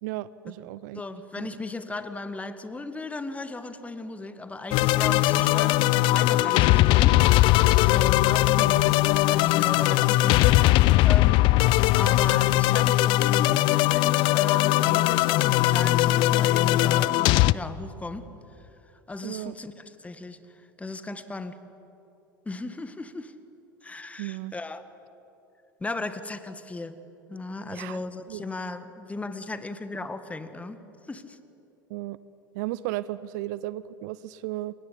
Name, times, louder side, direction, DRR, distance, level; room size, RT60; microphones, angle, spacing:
voice 1, 0.0-1.0 1.4-1.5 8.6-8.9 19.2-19.5 24.2-24.5 27.7-28.0 28.3-28.5 31.9-32.2 32.5-34.7, right 16 dB, 55° right, 18 dB, 0.6 m, -34 dB
voice 2, 0.9-11.4 11.9-18.3 18.6-18.7 19.1-21.6 22.5-23.3 23.8-24.8 25.8-27.0 27.3-30.8 31.1-31.4, left 2 dB, 10° left, 11 dB, 1.7 m, -37 dB
sound 1, 4.7-17.5, left 17 dB, 45° left, 0.5 m, -20 dB
29.0 x 23.0 x 8.4 m, 3.0 s
figure-of-eight pair, 75°, 12 cm